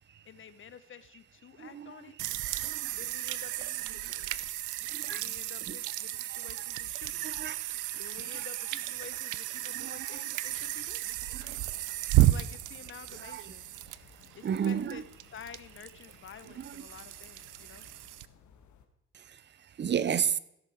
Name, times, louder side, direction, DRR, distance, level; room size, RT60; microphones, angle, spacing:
voice 1, 0.2-2.2 2.9-4.7 5.0-7.4 8.0-11.1 12.2-13.7 14.4-15.0 15.3-17.9, left 8 dB, 40° left, 0.8 m, -50 dB
voice 2, 1.6-1.9 2.6-3.0 4.9-5.2 5.7-5.8 6.3-6.4 7.2-7.6 8.3-8.5 9.7-10.2 11.3-11.7 13.2-13.4 14.4-15.0 16.6-16.8 19.1-20.4, right 8 dB, 35° right, 0.6 m, -33 dB
sound 1, 2.2-18.3, right 15 dB, 85° right, 0.6 m, -33 dB
sound 2, 11.1-18.9, left 7 dB, 70° left, 1.5 m, -59 dB
15.5 x 6.8 x 4.5 m
cardioid pair, 90°, 30 cm